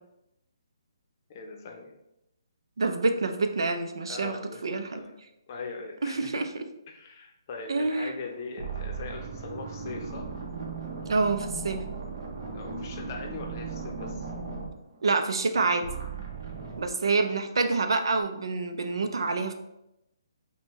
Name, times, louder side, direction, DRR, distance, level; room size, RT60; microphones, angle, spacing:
voice 1, 1.3-1.9 4.1-4.6 4.9-5.1 5.5-6.3 6.9-10.3 12.5-14.3 17.0-17.3, left 4 dB, 40° left, 2 dB, 0.6 m, -41 dB
voice 2, 2.8-5.0 6.0-6.5 7.7-8.1 11.1-11.8 15.0-15.8 16.8-19.5, right 3 dB, 75° right, 7 dB, 0.5 m, -27 dB
sound 1, 7.9-8.2 8.6-15.5 15.8-16.9, right 4 dB, 55° right, 0.8 m, -37 dB
5.2 x 2.2 x 3.0 m, 0.86 s
hypercardioid pair, 150°, 3 cm